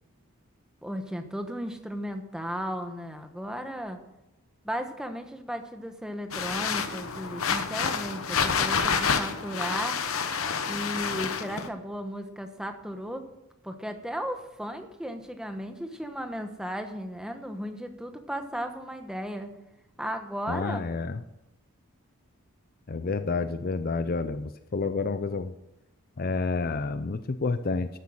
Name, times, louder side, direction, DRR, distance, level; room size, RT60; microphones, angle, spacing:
voice 1, 0.8-4.0 4.6-10.0 10.6-13.3 13.6-19.5 20.0-20.8, equal, 5° right, 6 dB, 1.1 m, -35 dB
sound 1, 6.3-11.7, left 6 dB, 70° left, 1.0 m, -28 dB
voice 2, 20.5-21.2 22.9-25.5 26.2-27.9, left 4 dB, 40° left, 10 dB, 0.5 m, -29 dB
13.0 x 8.2 x 6.4 m, 0.91 s
head